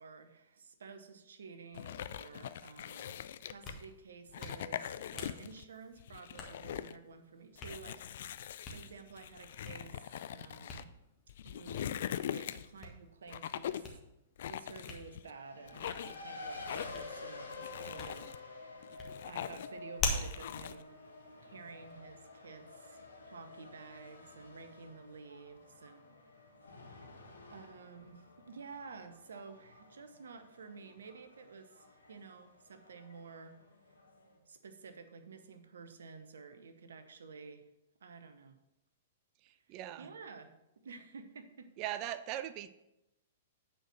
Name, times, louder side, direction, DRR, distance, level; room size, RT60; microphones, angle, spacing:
voice 1, 0.0-10.9 11.4-13.9 14.4-20.9 21.4-26.1 27.5-33.6 34.5-37.6 38.0-38.6 40.0-40.5 40.8-41.7, right 5 dB, 65° right, 9 dB, 0.9 m, -52 dB
sound 1, 1.7-3.8 4.3-5.6 6.0-7.0 7.6-10.8 11.3-12.8 13.3-13.9 14.4-15.3 15.7-16.2 16.7-17.1 17.5-18.4 18.8-19.8 20.1-20.8, left 10 dB, 55° left, 0.4 m, -42 dB
Hands, 3.4-21.9, left 3 dB, 25° left, 1.6 m, -46 dB
Race car auto racing, 15.2-34.4, left 3 dB, 75° left, 1.7 m, -51 dB
voice 2, 39.4-40.1 41.8-42.7, right 12 dB, 35° right, 14 dB, 0.5 m, -40 dB
9.0 x 4.7 x 6.3 m, 0.89 s
figure-of-eight pair, 105°, 0 cm